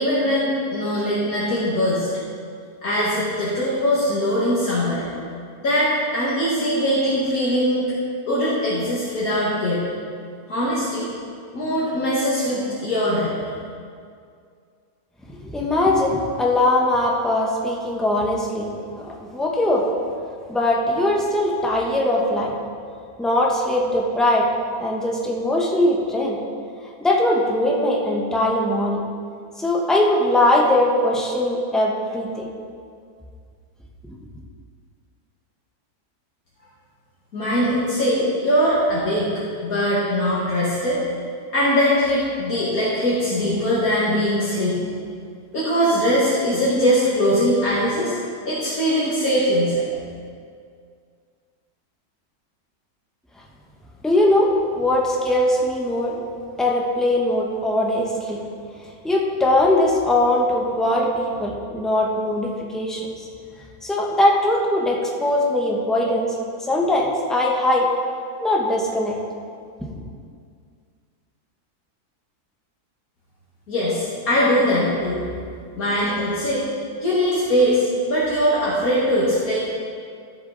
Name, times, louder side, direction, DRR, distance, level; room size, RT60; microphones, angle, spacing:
voice 1, 0.0-2.1 2.8-5.1 5.6-7.9 8.3-9.9 10.5-11.1 11.5-13.4 37.3-39.3 39.6-41.0 41.5-44.9 45.5-48.2 48.5-49.8 73.7-75.2 75.8-76.7 77.0-79.6, equal, 65° left, -9 dB, 2.1 m, -21 dB
voice 2, 15.3-19.9 20.5-22.6 23.2-24.5 24.8-26.4 27.0-29.0 29.6-32.5 54.0-56.2 56.6-58.4 59.0-63.1 63.8-66.3 66.7-67.9 68.4-69.2, left 1 dB, ahead, -2 dB, 0.9 m, -21 dB
13.5 x 6.9 x 4.0 m, 2.3 s
omnidirectional pair, 1.6 m